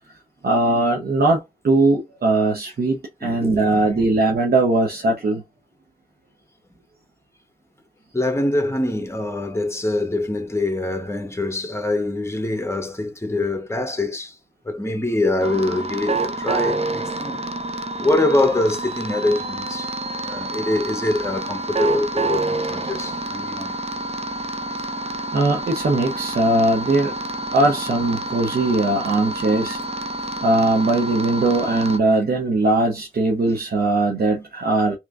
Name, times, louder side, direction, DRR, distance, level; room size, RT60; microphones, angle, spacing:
voice 1, 0.4-5.4 25.3-27.1 27.5-29.8 30.4-35.0, right 2 dB, 75° right, 0.9 m, -20 dB
voice 2, 3.2-4.0 8.1-14.3 14.6-17.4 18.0-19.9 20.2-23.7, left 2 dB, 15° left, 1.1 m, -24 dB
sound 1, 15.4-32.0, right 2 dB, 40° right, 0.6 m, -28 dB
3.4 x 3.0 x 2.5 m
cardioid pair, 55°, 16 cm